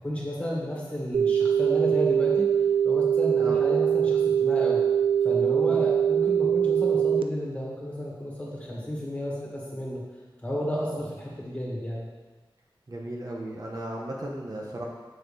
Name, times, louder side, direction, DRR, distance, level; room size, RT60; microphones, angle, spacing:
voice 1, 0.0-2.5 2.8-4.8 5.2-10.0 10.4-12.1, equal, 15° left, -5 dB, 2.0 m, -32 dB
sound 1, 1.1-7.2, right 8 dB, 80° right, 0.4 m, -23 dB
voice 2, 12.9-14.9, right 1 dB, 45° right, -2 dB, 0.9 m, -35 dB
6.4 x 6.3 x 3.4 m, 1.3 s
wide cardioid pair, 85°, 9 cm